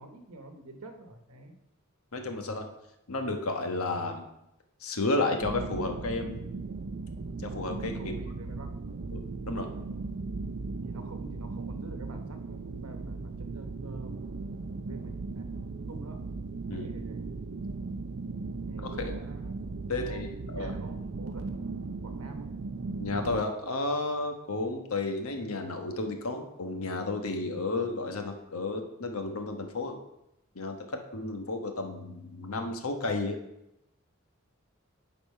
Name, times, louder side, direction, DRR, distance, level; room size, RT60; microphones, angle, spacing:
voice 1, 0.0-1.5 7.9-8.7 10.8-14.1 14.5-15.5 15.9-16.2 16.7-17.2 18.7-19.6 19.9-21.7 22.0-22.5, right 2 dB, 85° right, 6 dB, 1.0 m, -47 dB
voice 2, 2.1-2.7 3.1-4.3 4.8-6.4 7.4-8.2 9.1-9.7 16.7-17.0 18.8-19.1 19.9-20.7 23.0-30.0 30.5-33.4, left 2 dB, 80° left, 5 dB, 1.2 m, -32 dB
sound 1, 5.4-23.4, right 3 dB, 60° right, 0.5 m, -37 dB
10.0 x 4.2 x 5.4 m, 0.86 s
head